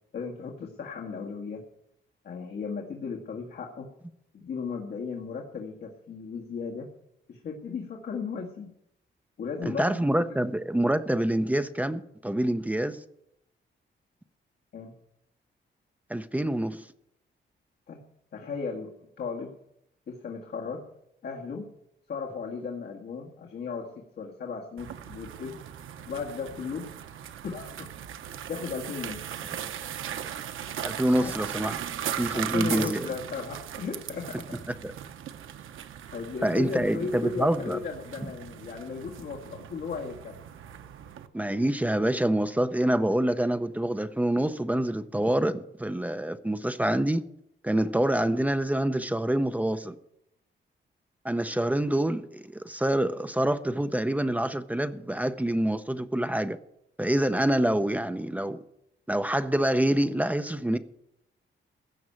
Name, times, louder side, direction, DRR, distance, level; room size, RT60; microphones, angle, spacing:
voice 1, 0.1-1.6 2.2-3.9 4.3-6.9 7.3-8.7 9.4-10.0 14.7-15.0 17.9-18.0 18.3-19.5 20.1-20.8 21.2-21.7 22.1-25.6 26.1-26.9 27.4-27.9 28.5-29.2 31.2-31.3 32.3-34.6 35.7-35.9 36.1-40.4, left 5 dB, 55° left, 1.8 m, -36 dB
voice 2, 9.8-13.0 16.1-16.9 30.8-31.7 32.2-33.1 34.8-34.9 36.4-37.8 41.3-47.2 47.6-50.0 51.2-56.6 57.0-58.6 59.1-60.8, right 1 dB, 5° right, 0.5 m, -26 dB
sound 1, 24.8-41.3, right 10 dB, 85° right, 0.9 m, -38 dB
16.0 x 6.1 x 8.7 m
wide cardioid pair, 175°, 20 cm